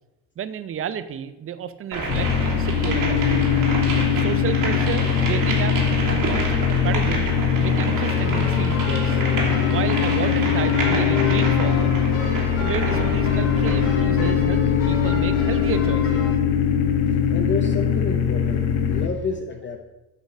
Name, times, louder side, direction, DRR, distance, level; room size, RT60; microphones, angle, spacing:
voice 1, 0.4-3.4 4.2-5.7 6.1-7.3 7.6-9.2 9.7-11.9 12.6-16.3, right 8 dB, 30° right, 13 dB, 0.6 m, -31 dB
sound 1, 1.9-14.0, right 2 dB, 45° right, 2.5 m, -29 dB
sound 2, 2.1-19.1, left 7 dB, 85° left, 1.0 m, -21 dB
sound 3, 8.1-16.3, left 5 dB, 70° left, 2.8 m, -32 dB
voice 2, 17.3-19.8, left 5 dB, 25° left, 4 dB, 0.7 m, -29 dB
8.2 x 4.0 x 6.7 m, 1.0 s
supercardioid pair, 90°, 44 cm